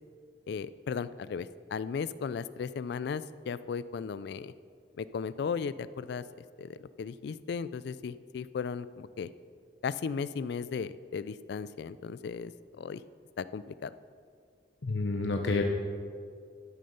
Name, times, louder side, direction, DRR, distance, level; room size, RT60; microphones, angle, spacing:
voice 1, 0.5-4.5 5.0-6.2 6.6-9.3 9.8-12.5 12.8-13.0 13.4-13.9, left 6 dB, 65° left, 16 dB, 0.3 m, -36 dB
voice 2, 14.8-15.6, left 3 dB, 80° left, 3 dB, 0.7 m, -29 dB
13.0 x 6.4 x 5.4 m, 2.2 s
head